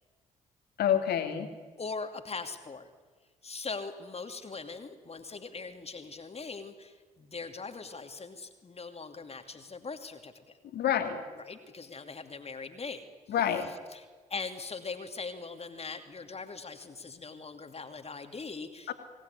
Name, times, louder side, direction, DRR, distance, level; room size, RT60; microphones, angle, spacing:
voice 1, 0.8-1.5 10.7-11.2 13.3-13.7 18.9-19.0, left 9 dB, 65° left, 7 dB, 2.7 m, -27 dB
voice 2, 1.8-2.9 3.4-10.6 11.4-13.3 13.7-18.9, left 4 dB, 35° left, 7 dB, 2.8 m, -41 dB
24.5 x 18.5 x 9.8 m, 1.4 s
hypercardioid pair, 45°, 18 cm